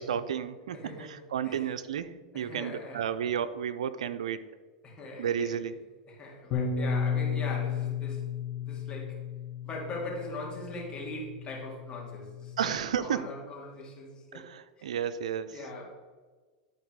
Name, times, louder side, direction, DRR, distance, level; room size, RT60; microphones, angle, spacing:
voice 1, 0.0-4.4 5.2-5.7 12.6-13.3 14.3-15.5, right 8 dB, 90° right, 13 dB, 0.5 m, -32 dB
voice 2, 0.7-1.7 2.3-3.2 4.8-5.5 6.1-8.2 8.6-9.2 9.6-12.7 13.0-14.5 14.8-15.0 15.5-15.9, left 2 dB, 25° left, -3 dB, 2.7 m, -41 dB
Bass guitar, 6.5-12.7, left 6 dB, 50° left, 1.3 m, -34 dB
11.0 x 4.4 x 4.7 m, 1.4 s
hypercardioid pair, 115°, 4 cm